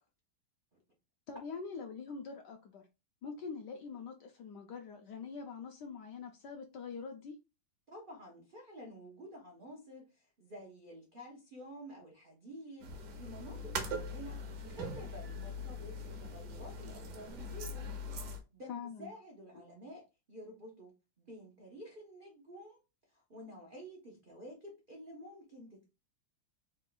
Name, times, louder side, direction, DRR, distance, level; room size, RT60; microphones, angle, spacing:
voice 1, 1.3-2.9 3.2-7.4 18.7-19.1, left 5 dB, 75° left, 1.0 m, -44 dB
voice 2, 7.9-17.9 18.3-22.8 23.1-25.9, equal, 85° right, 0.4 m, -51 dB
sound 1, 12.8-18.4, equal, 65° right, 1.2 m, -41 dB
3.8 x 2.3 x 3.7 m
omnidirectional pair, 2.3 m